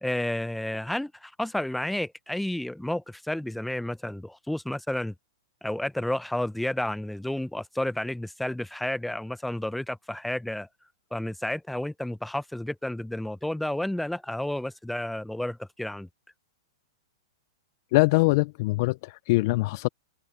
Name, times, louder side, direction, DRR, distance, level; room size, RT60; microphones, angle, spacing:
voice 1, 0.0-5.1 5.6-10.7 11.1-16.1, left 1 dB, ahead, 0.6 m, -31 dB
voice 2, 17.9-19.9, left 23 dB, 50° left, 0.4 m, -23 dB
open air
hypercardioid pair, 130°, 2 cm